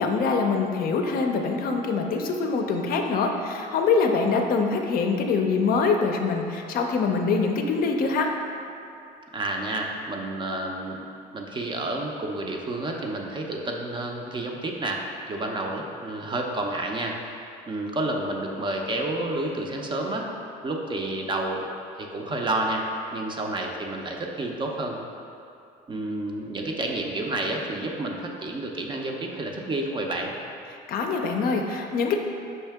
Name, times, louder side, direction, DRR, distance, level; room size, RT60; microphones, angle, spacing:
voice 1, 0.0-8.3 30.9-32.2, left 4 dB, 60° left, 3 dB, 0.5 m, -24 dB
voice 2, 9.3-11.0 11.3-15.0 15.3-17.1 17.7-20.2 20.6-21.7 22.0-22.8 23.1-25.0 25.9-30.3, right 2 dB, 30° right, 1 dB, 0.5 m, -30 dB
5.5 x 2.7 x 3.4 m, 2.7 s
cardioid pair, 110°, 17 cm